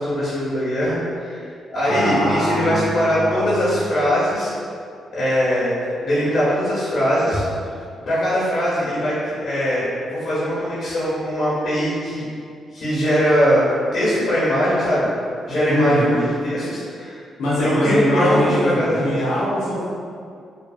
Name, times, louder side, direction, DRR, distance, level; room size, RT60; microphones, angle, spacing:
voice 1, 0.0-1.4 1.7-4.5 5.1-7.4 8.1-12.2 12.7-13.6 13.9-15.1 15.4-16.0 16.4-17.2 17.6-19.1, equal, 55° left, -10 dB, 1.4 m, -21 dB
voice 2, 1.8-3.8 15.7-16.2 17.4-19.9, equal, 90° left, -9 dB, 0.9 m, -22 dB
3.2 x 2.3 x 2.4 m, 2.3 s
cardioid pair, 70°, 0 cm